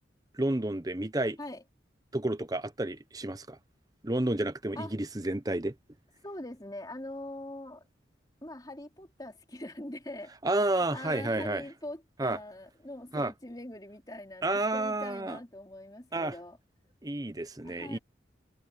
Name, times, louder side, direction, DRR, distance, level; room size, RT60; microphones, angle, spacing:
voice 1, 0.3-1.4 2.1-3.6 4.0-5.7 10.4-11.6 12.2-12.4 13.1-13.3 14.4-15.4 16.1-16.3 17.0-18.0, right 2 dB, 20° right, 0.9 m, -30 dB
voice 2, 6.2-7.9 8.4-16.6 17.6-18.0, left 1 dB, 20° left, 3.1 m, -43 dB
head